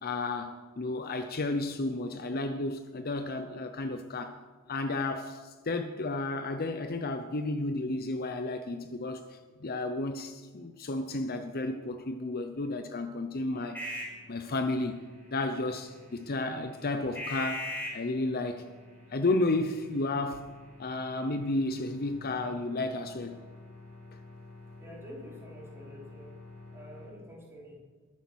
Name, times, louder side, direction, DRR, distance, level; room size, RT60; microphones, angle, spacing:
voice 1, 0.0-4.4 4.7-13.8 14.3-15.0 15.3-18.7 19.1-20.5 20.8-23.4, left 2 dB, 45° left, 0.7 m, -32 dB
sound 1, 13.6-27.1, left 1 dB, 10° left, 4.7 m, -45 dB
voice 2, 24.8-26.3 26.7-27.8, equal, 10° right, 4.4 m, -48 dB
21.5 x 8.5 x 6.2 m
head